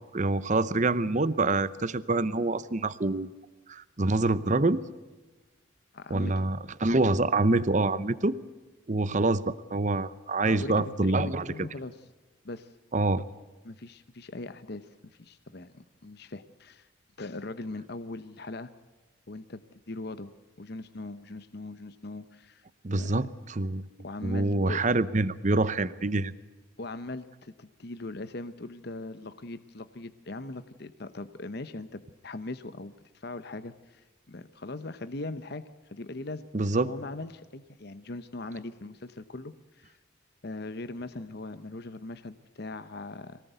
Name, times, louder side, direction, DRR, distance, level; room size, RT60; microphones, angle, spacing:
voice 1, 0.1-3.3 3.7-4.8 6.1-8.4 8.9-11.4 12.9-13.2 22.8-23.8 24.2-26.3 36.5-36.9, right 2 dB, 35° right, 15 dB, 0.8 m, -26 dB
voice 2, 5.9-6.4 10.4-12.0 12.4-12.7 13.6-16.9 17.2-18.7 19.3-20.3 20.6-22.6 22.9-23.3 24.0-24.8 26.8-35.6 35.9-36.5 36.7-40.0 40.4-43.4, left 2 dB, 55° left, 11 dB, 0.9 m, -40 dB
24.0 x 18.0 x 8.1 m, 1.2 s
head